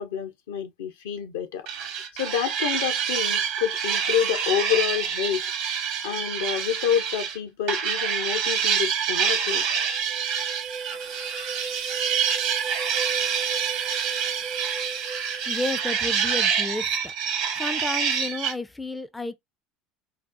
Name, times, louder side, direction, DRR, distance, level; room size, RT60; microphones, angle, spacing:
voice 1, 0.0-1.7 2.2-5.4 6.0-9.6, left 9 dB, 70° left, 0.5 m, -28 dB
sound 1, 1.7-7.4 7.7-18.5, right 7 dB, 60° right, 0.8 m, -27 dB
sound 2, 9.2-16.3, right 6 dB, 45° right, 0.5 m, -36 dB
voice 2, 15.5-17.1 17.6-19.3, left 2 dB, 10° left, 0.4 m, -32 dB
4.0 x 2.0 x 2.5 m
figure-of-eight pair, 65°, 0 cm